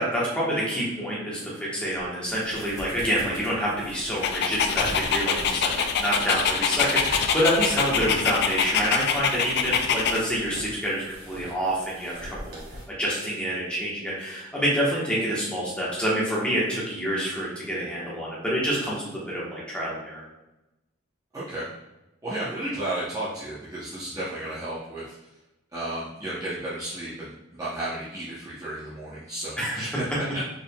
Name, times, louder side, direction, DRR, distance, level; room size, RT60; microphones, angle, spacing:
voice 1, 0.0-12.6 13.0-20.2 29.6-29.8, equal, 5° left, -7 dB, 1.2 m, -27 dB
sound 1, 1.9-12.8, equal, 50° right, 1.4 m, -42 dB
Dog, 4.2-10.2, left 6 dB, 55° left, 0.3 m, -25 dB
voice 2, 21.3-21.7 22.2-25.1 25.7-30.4, right 1 dB, 15° right, -10 dB, 0.8 m, -33 dB
4.5 x 3.6 x 2.2 m, 0.98 s
head